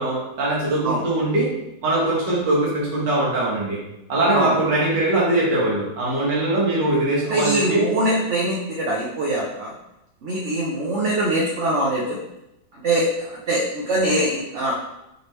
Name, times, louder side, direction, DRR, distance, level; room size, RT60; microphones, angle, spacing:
voice 1, 0.0-1.5 1.8-3.8 4.1-7.9, right 2 dB, 85° right, -5 dB, 2.0 m, -21 dB
voice 2, 7.3-9.7 10.2-12.2 12.8-14.7, right 1 dB, 55° right, -4 dB, 0.9 m, -23 dB
5.1 x 3.2 x 3.1 m, 0.88 s
omnidirectional pair, 1.9 m